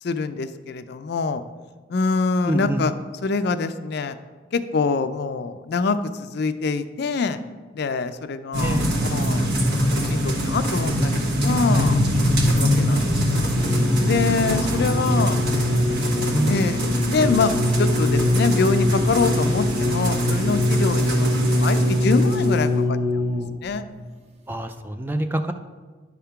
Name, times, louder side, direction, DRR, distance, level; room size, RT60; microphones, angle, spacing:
voice 1, 0.0-1.4 1.9-2.9 3.2-4.2 4.5-7.4 7.7-9.5 10.0-12.0 12.4-13.4 14.0-15.4 16.5-16.8 17.1-23.2 23.6-23.9, left 4 dB, 55° left, 11 dB, 0.4 m, -25 dB
voice 2, 2.5-2.8 8.6-8.9 16.0-16.6 24.5-25.5, right 1 dB, 10° right, 7 dB, 0.3 m, -26 dB
sound 1, 8.5-22.6, equal, 60° right, 1.4 m, -24 dB
sound 2, 13.6-23.7 24.5-24.6, left 1 dB, 35° right, 0.8 m, -22 dB
10.5 x 3.6 x 5.7 m, 1.4 s
head